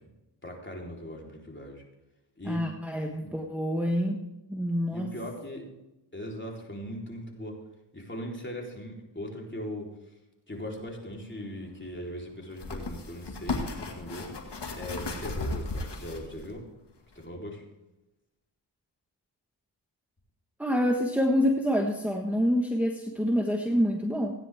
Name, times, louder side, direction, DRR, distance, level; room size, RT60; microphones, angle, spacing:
voice 1, 0.4-1.8 2.4-2.7 3.2-3.3 4.9-5.7 6.1-7.6 7.9-10.1 10.5-16.7 17.2-17.6, equal, 25° left, -1 dB, 3.8 m, -39 dB
voice 2, 2.5-5.1 20.6-24.3, equal, 5° right, 2 dB, 1.4 m, -27 dB
sound 1, 10.7-10.8 12.5-16.5 17.1-17.3, left 3 dB, 55° left, 2.1 m, -35 dB
16.0 x 9.7 x 3.6 m, 0.97 s
cardioid pair, 45°, 49 cm